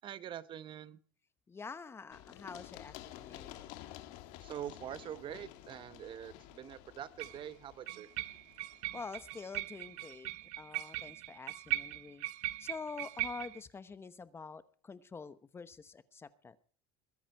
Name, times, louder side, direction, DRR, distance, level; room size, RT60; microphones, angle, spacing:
voice 1, 0.0-1.0 4.4-8.1, right 10 dB, 40° right, 14 dB, 1.0 m, -44 dB
voice 2, 1.5-3.7 8.9-10.3 10.6-12.2 12.6-16.6, left 5 dB, 20° left, 14 dB, 1.0 m, -47 dB
Run, 2.1-9.8, left 14 dB, 70° left, 1.7 m, -52 dB
sound 1, 5.0-5.1 7.2-7.4 7.9-13.6, right 16 dB, 65° right, 0.8 m, -40 dB
21.5 x 10.0 x 4.6 m, 0.43 s
cardioid pair, 135°, 13 cm